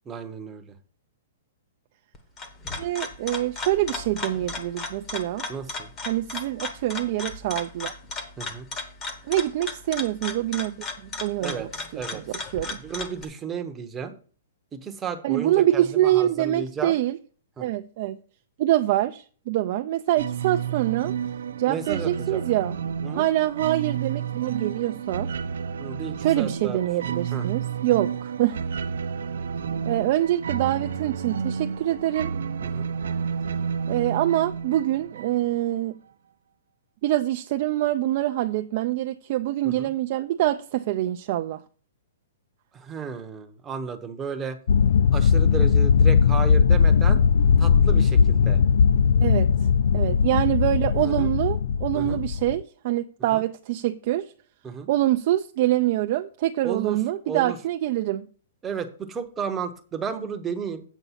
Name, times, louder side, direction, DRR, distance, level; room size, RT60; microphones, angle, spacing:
voice 1, 0.1-0.7 5.5-5.9 8.4-8.7 11.4-11.7 11.9-12.2 12.8-14.1 14.7-16.9 17.6-17.7 21.7-22.4 23.0-23.3 25.8-26.8 27.3-27.5 32.7-32.9 39.6-39.9 42.7-44.6 45.1-47.2 47.6-48.6 51.0-51.3 51.9-52.2 53.3-53.4 54.6-54.9 56.6-57.0 57.3-57.6 58.6-60.8, right 6 dB, 10° right, 0.8 m, -33 dB
sound 1, 2.1-13.2, left 3 dB, 15° left, 0.9 m, -35 dB
voice 2, 2.8-5.4 6.1-7.9 9.3-10.8 11.2-12.2 12.5-12.8 15.2-17.2 17.6-18.2 18.6-21.2 21.6-22.8 23.1-25.3 26.2-28.6 29.9-32.3 33.9-36.0 37.0-41.6 49.2-49.5 49.9-54.3 54.9-58.3, right 14 dB, 35° right, 0.4 m, -25 dB
sound 2, 20.1-35.6, right 7 dB, 75° right, 0.6 m, -31 dB
sound 3, 44.7-52.6, left 6 dB, 60° left, 0.3 m, -19 dB
8.1 x 5.2 x 5.6 m
hypercardioid pair, 175°, 0 cm